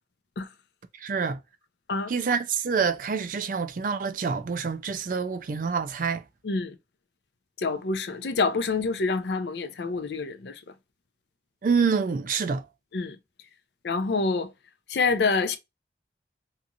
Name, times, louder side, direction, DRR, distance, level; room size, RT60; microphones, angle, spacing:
voice 1, 1.0-1.4 2.1-6.2 11.6-12.6, right 5 dB, 50° right, 0.4 m, -27 dB
voice 2, 6.4-6.8 7.6-10.6 12.9-13.2 13.8-14.5 14.9-15.6, left 4 dB, 75° left, 0.5 m, -27 dB
2.8 x 2.5 x 2.3 m
head